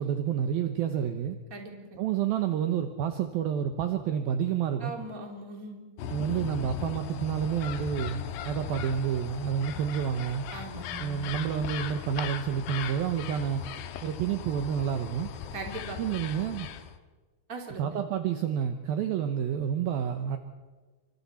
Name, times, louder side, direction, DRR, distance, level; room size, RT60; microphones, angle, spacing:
voice 1, 0.0-1.4 2.0-4.9 6.1-10.5 11.0-13.7 14.0-15.3 16.0-16.7 17.8-20.4, right 8 dB, 75° right, 7 dB, 2.2 m, -29 dB
voice 2, 1.5-2.0 4.8-5.8 10.5-11.2 15.5-16.0 17.5-17.9, right 3 dB, 20° right, 2 dB, 2.5 m, -39 dB
sound 1, 6.0-17.0, left 9 dB, 70° left, 2.9 m, -38 dB
28.5 x 25.5 x 4.3 m, 1.3 s
omnidirectional pair, 5.6 m